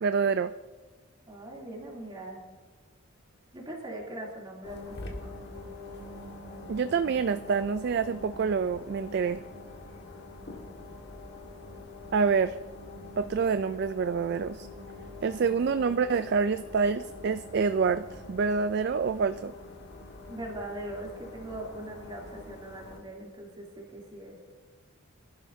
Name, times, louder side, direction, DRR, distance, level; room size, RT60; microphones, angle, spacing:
voice 1, 0.0-0.5 6.7-9.4 12.1-12.6 13.2-14.7 15.2-19.5, right 5 dB, 50° right, 12 dB, 0.3 m, -27 dB
voice 2, 1.3-2.4 3.5-5.4 20.3-24.4, right 1 dB, 20° right, -3 dB, 2.9 m, -41 dB
sound 1, 4.6-23.0, left 2 dB, 50° left, 1.8 m, -45 dB
23.5 x 12.0 x 2.7 m, 1.3 s
head